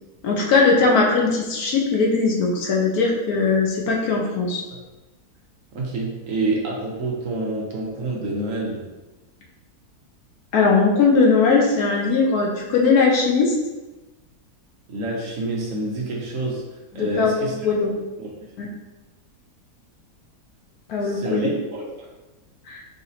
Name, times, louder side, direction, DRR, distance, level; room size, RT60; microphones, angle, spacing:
voice 1, 0.2-4.6 10.5-13.5 16.9-17.9 18.6-18.7 20.9-21.5 22.7-22.8, left 4 dB, 70° left, 0 dB, 1.2 m, -19 dB
voice 2, 5.7-8.8 14.9-16.6 16.9-17.7 18.2-18.3 21.0-22.1, right 2 dB, 60° right, -2 dB, 1.0 m, -27 dB
4.9 x 2.9 x 2.7 m, 1.1 s
omnidirectional pair, 1.7 m